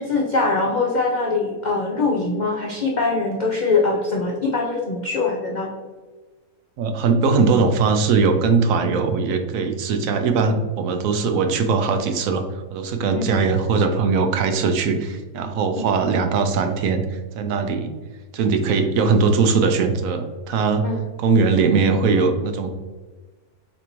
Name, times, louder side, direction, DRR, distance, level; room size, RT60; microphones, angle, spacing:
voice 1, 0.0-5.7 8.8-9.0 13.1-13.3 15.8-15.9 20.8-21.0, left 3 dB, 75° left, -1 dB, 0.4 m, -22 dB
voice 2, 6.8-17.9 18.3-20.8 21.2-22.7, right 4 dB, 70° right, 7 dB, 0.9 m, -20 dB
6.6 x 2.6 x 3.0 m, 1.3 s
omnidirectional pair, 1.6 m